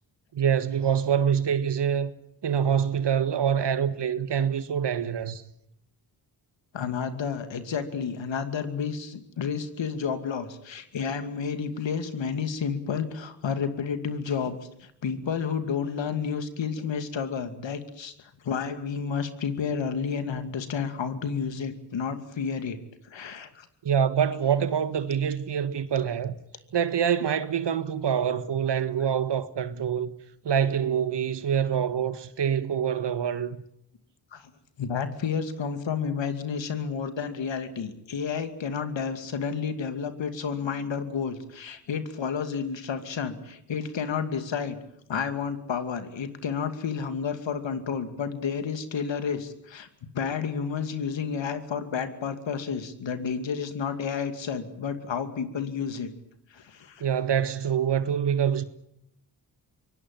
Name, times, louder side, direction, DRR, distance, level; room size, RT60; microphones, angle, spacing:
voice 1, 0.3-2.1 2.4-5.4 23.8-26.4 26.7-30.1 30.4-33.6 57.0-58.6, right 8 dB, 60° right, 1.7 m, -25 dB
voice 2, 6.7-18.1 18.4-22.8 23.0-23.7 34.3-34.5 34.8-44.8 45.1-49.9 50.1-56.1 56.5-57.0, left 6 dB, 65° left, 2.5 m, -31 dB
23.5 x 18.5 x 9.0 m
supercardioid pair, 40°, 48 cm